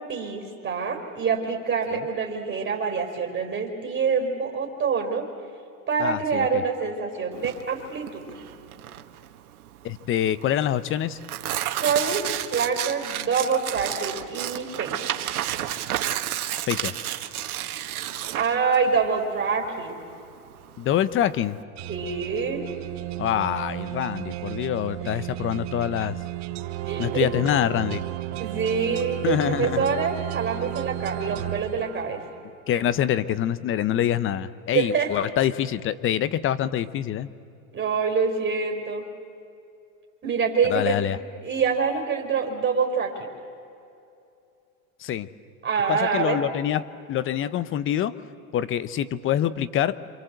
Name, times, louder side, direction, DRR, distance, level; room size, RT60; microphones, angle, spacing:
voice 1, 0.0-5.3 5.9-8.2 11.8-12.2 12.5-15.1 18.3-20.0 21.9-22.6 26.9-27.3 28.4-32.2 34.7-35.1 37.7-39.1 40.2-41.0 41.4-43.1 45.6-46.4, right 5 dB, 25° right, 1 dB, 4.5 m, -26 dB
voice 2, 6.0-6.6 9.8-11.2 16.7-16.9 20.8-21.6 23.2-26.2 27.0-28.0 29.2-29.9 32.7-37.3 40.6-41.2 45.0-45.3 45.9-46.8 47.1-48.2 48.5-50.0, left 11 dB, 30° left, 16 dB, 0.9 m, -25 dB
Tearing, 7.3-21.6, right 12 dB, 90° right, 1.5 m, -32 dB
sound 1, 21.8-32.4, right 16 dB, 40° right, 1.3 m, -33 dB
27.5 x 25.5 x 8.0 m, 2.6 s
supercardioid pair, 125°, 43 cm